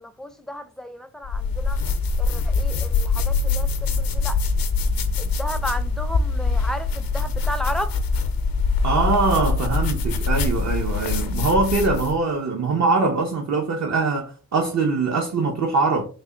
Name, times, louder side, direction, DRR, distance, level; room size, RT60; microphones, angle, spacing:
voice 1, 0.0-1.8 2.2-4.4 5.2-7.9, equal, ahead, 0.4 m, -33 dB
sound 1, 1.2-12.2, left 4 dB, 85° left, 0.5 m, -23 dB
voice 2, 8.8-16.0, right 3 dB, 55° right, 0.7 m, -22 dB
3.4 x 2.1 x 3.8 m
cardioid pair, 55°, 34 cm